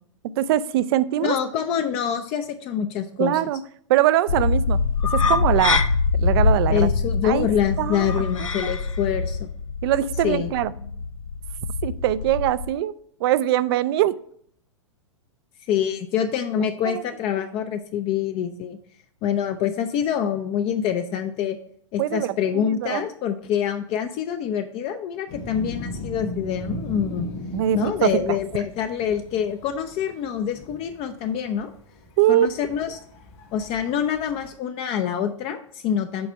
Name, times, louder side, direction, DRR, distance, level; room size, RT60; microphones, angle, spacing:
voice 1, 0.2-1.3 3.2-3.6 3.9-4.8 5.1-5.8 6.1-6.9 7.2-7.5 7.8-8.1 8.4-8.7 9.8-10.7 11.8-12.9 13.2-14.2 16.8-17.0 22.0-23.1 27.5-28.1 32.2-32.5, right 13 dB, 50° right, 16 dB, 0.4 m, -22 dB
voice 2, 1.2-3.4 6.7-9.5 10.2-10.5 15.7-18.8 19.2-21.6 21.9-27.3 27.7-31.7 32.3-33.0 33.5-36.3, left 8 dB, 35° left, 7 dB, 0.5 m, -26 dB
sound 1, 4.3-12.7, left 4 dB, 90° left, 0.6 m, -24 dB
sound 2, 25.3-34.5, left 1 dB, 55° left, 1.9 m, -38 dB
7.7 x 3.3 x 5.5 m, 0.65 s
hypercardioid pair, 110°, 16 cm